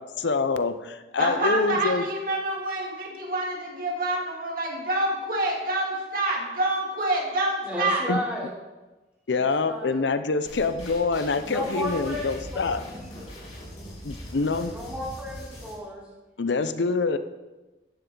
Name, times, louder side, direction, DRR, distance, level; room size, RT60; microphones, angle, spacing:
voice 1, 0.2-0.7 1.1-2.0 8.1-8.2 9.3-12.8 14.0-14.7 16.4-17.2, left 4 dB, 75° left, 10 dB, 0.6 m, -25 dB
voice 2, 1.2-8.0, right 1 dB, 50° right, -1 dB, 2.5 m, -27 dB
voice 3, 7.6-8.5 9.3-10.0 11.4-13.3 14.7-16.0, equal, 5° right, -6 dB, 3.2 m, -34 dB
sound 1, 10.5-15.8, equal, 40° left, 3.8 m, -41 dB
14.0 x 10.5 x 3.8 m, 1.1 s
head